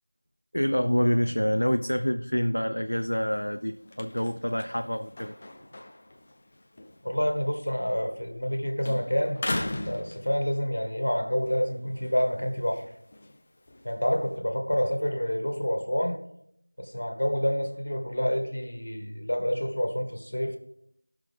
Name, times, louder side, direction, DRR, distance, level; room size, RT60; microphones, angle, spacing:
voice 1, 0.5-5.3, equal, 60° left, 6 dB, 0.6 m, -27 dB
sound 1, 2.9-8.5 8.8-10.8 11.3-14.4, left 1 dB, 15° left, 0.4 m, -39 dB
voice 2, 7.0-9.4 9.8-12.8 13.8-16.2 16.8-20.6, equal, 45° left, 4 dB, 1.7 m, -28 dB
18.5 x 6.2 x 3.5 m, 0.73 s
figure-of-eight pair, 175°, 0 cm